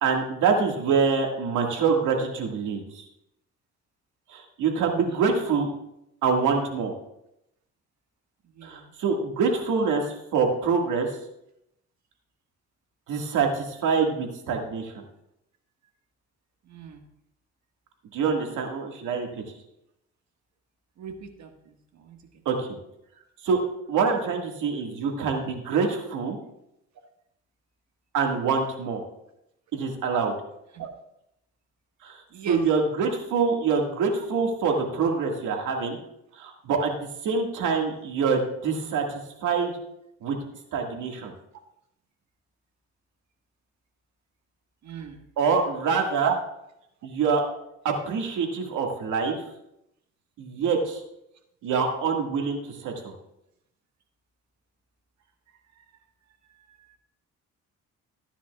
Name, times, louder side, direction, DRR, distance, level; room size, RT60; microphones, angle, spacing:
voice 1, 0.0-3.0 4.3-5.7 6.2-6.9 8.6-10.0 10.3-11.1 13.1-15.0 18.1-19.4 22.5-22.8 23.4-23.6 23.9-26.4 28.1-29.0 29.7-30.4 32.0-32.2 32.5-36.0 36.4-39.7 40.2-40.4 40.7-41.3 45.4-46.3 47.0-47.4 47.8-49.4 50.4-51.0 51.6-53.1, right 5 dB, 85° right, 2 dB, 1.9 m, -25 dB
voice 2, 16.7-17.0 21.0-21.1 21.4-21.5 22.0-22.2 30.7-30.9 32.3-32.6 44.8-45.2 46.2-46.3, right 9 dB, 65° right, 4 dB, 1.6 m, -33 dB
15.0 x 9.9 x 2.4 m, 0.82 s
cardioid pair, 90°, 30 cm